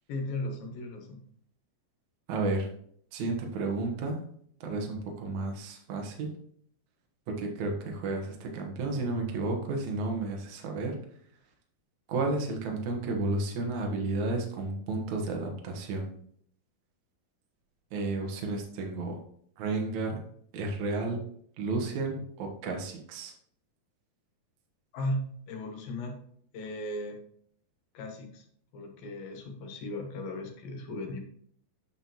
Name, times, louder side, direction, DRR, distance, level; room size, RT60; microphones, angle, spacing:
voice 1, 0.1-1.2 12.2-12.4 24.9-26.2 26.5-27.2 27.9-28.5 28.7-31.2, left 1 dB, 75° left, 2 dB, 3.0 m, -36 dB
voice 2, 2.3-2.7 3.1-4.2 4.6-6.3 7.4-10.9 12.1-16.1 17.9-19.2 19.6-20.1 20.5-21.2 21.6-23.3, right 3 dB, 60° right, 1 dB, 2.3 m, -32 dB
9.4 x 5.5 x 2.9 m, 0.63 s
omnidirectional pair, 4.3 m